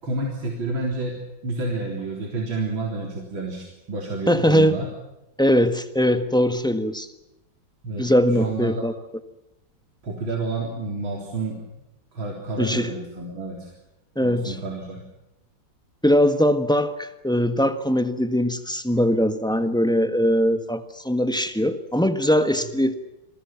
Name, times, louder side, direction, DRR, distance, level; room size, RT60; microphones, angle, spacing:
voice 1, 0.0-1.2 1.4-4.9 7.8-8.9 10.0-11.6 12.1-13.7 14.2-15.0 19.6-19.7, right 2 dB, 85° right, 0 dB, 4.5 m, -29 dB
voice 2, 4.3-4.7 5.4-7.1 8.0-8.9 12.6-12.9 14.1-14.5 16.0-22.9, equal, ahead, 9 dB, 1.3 m, -21 dB
29.0 x 22.5 x 6.0 m, 0.93 s
omnidirectional pair, 2.1 m